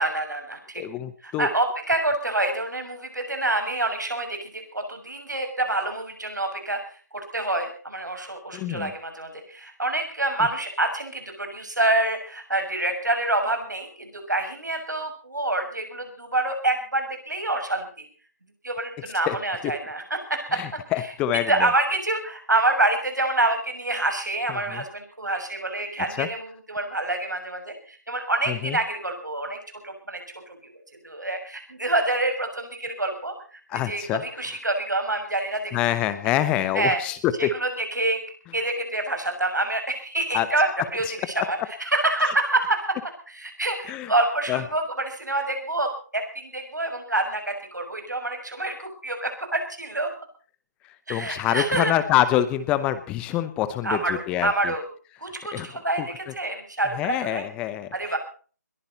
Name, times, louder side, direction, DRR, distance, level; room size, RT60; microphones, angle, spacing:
voice 1, 0.0-0.8 1.2-6.8 7.1-18.1 18.6-20.6 21.5-29.6 29.8-30.2 31.0-35.8 36.7-37.0 37.4-38.2 38.5-43.0 43.3-50.1 51.1-51.9 53.8-54.8 55.2-57.4 57.9-58.2, right 2 dB, 75° right, 5 dB, 6.8 m, -27 dB
voice 2, 0.8-1.5 8.5-8.9 19.3-19.4 19.6-19.7 20.5-21.7 24.5-24.8 26.2-26.3 28.5-28.8 33.7-34.6 35.7-37.5 40.3-40.5 41.1-41.2 42.3-42.4 43.9-44.1 44.5-44.6 50.8-54.7 55.5-55.7 56.0-56.3 56.9-58.2, left 12 dB, 10° left, 13 dB, 0.8 m, -26 dB
21.5 x 15.5 x 4.2 m, 0.40 s
figure-of-eight pair, 150°, 10 cm